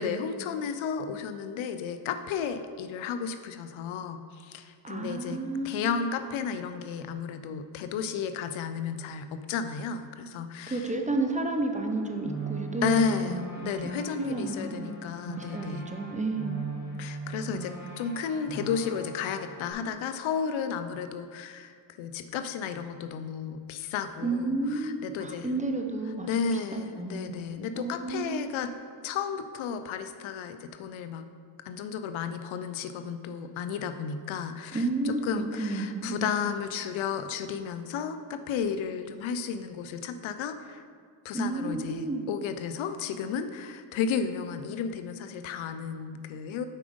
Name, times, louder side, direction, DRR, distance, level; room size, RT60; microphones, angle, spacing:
voice 1, 0.0-5.4 5.6-10.9 12.8-15.8 17.0-25.5 26.2-28.7 29.0-31.2 31.7-40.8 41.2-46.7, left 6 dB, 70° left, 9 dB, 0.6 m, -33 dB
voice 2, 4.8-5.9 10.7-14.9 15.4-16.6 24.2-27.5 27.8-28.5 34.7-36.2 41.3-42.3, right 2 dB, 15° right, 4 dB, 0.9 m, -32 dB
sound 1, 11.7-19.7, right 3 dB, 35° left, 2.1 m, -40 dB
7.4 x 5.0 x 5.2 m, 2.1 s
supercardioid pair, 65°, 49 cm